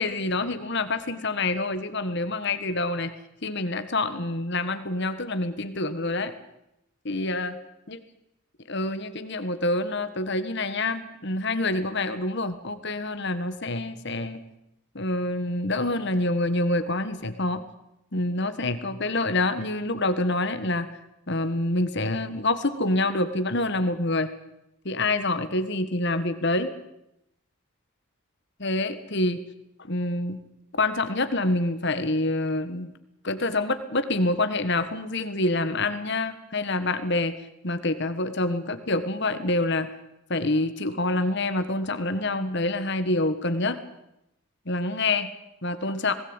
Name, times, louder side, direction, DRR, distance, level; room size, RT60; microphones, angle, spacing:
voice 1, 0.0-3.1 3.4-6.3 7.0-7.6 7.9-8.0 8.7-14.4 14.9-17.6 18.1-20.9 21.3-24.3 24.8-26.7 28.6-29.4 29.9-30.4 30.7-32.9 33.2-37.3 37.6-39.9 40.3-43.8 44.6-45.3 45.6-46.1, left 2 dB, 55° left, 10 dB, 1.6 m, -26 dB
20.0 x 17.5 x 9.0 m, 0.85 s
head